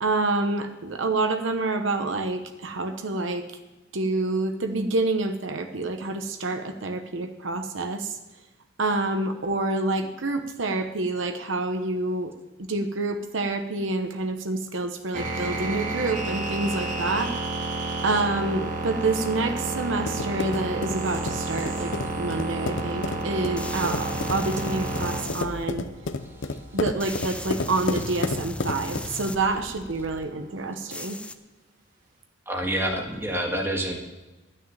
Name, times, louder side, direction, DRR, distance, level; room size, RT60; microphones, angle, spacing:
voice 1, 0.0-3.5 3.9-8.2 8.8-12.3 12.6-17.3 18.0-25.9 26.7-31.2, right 2 dB, 80° right, 6 dB, 0.9 m, -27 dB
sound 1, 15.1-31.1, right 2 dB, 45° right, 2.2 m, -31 dB
sound 2, 19.9-29.3, left 3 dB, 70° left, 0.7 m, -32 dB
sound 3, 23.6-25.7 27.0-30.2 30.9-31.3, left 1 dB, 5° left, 0.5 m, -37 dB
voice 2, 32.5-34.0, equal, 15° right, 1 dB, 1.9 m, -27 dB
11.5 x 6.4 x 9.0 m, 1.1 s
head